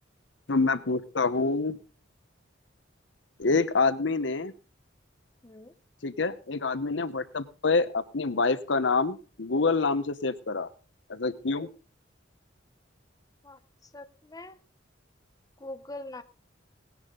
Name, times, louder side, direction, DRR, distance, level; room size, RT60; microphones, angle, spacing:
voice 1, 0.5-1.8 3.4-4.5 6.0-10.7 11.1-11.7, left 3 dB, 70° left, 14 dB, 0.9 m, -26 dB
voice 2, 5.4-5.7 11.6-11.7 13.4-14.6 15.6-16.2, left 2 dB, 20° left, 9 dB, 0.9 m, -43 dB
18.5 x 10.5 x 3.8 m, 0.35 s
head